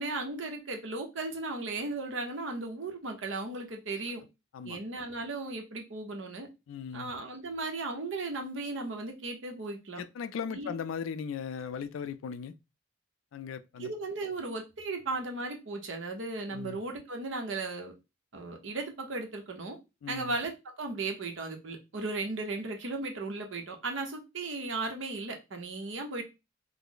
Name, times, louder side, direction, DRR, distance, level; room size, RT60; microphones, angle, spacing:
voice 1, 0.0-4.2 4.6-6.5 6.9-10.0 10.5-10.8 13.8-17.9 18.3-19.8 20.1-26.2, right 3 dB, 70° right, 0.8 m, -36 dB
voice 2, 6.7-7.1 10.0-12.5 13.3-13.9 16.5-16.8 20.0-20.3, left 7 dB, 80° left, 0.3 m, -38 dB
3.1 x 2.0 x 3.8 m
head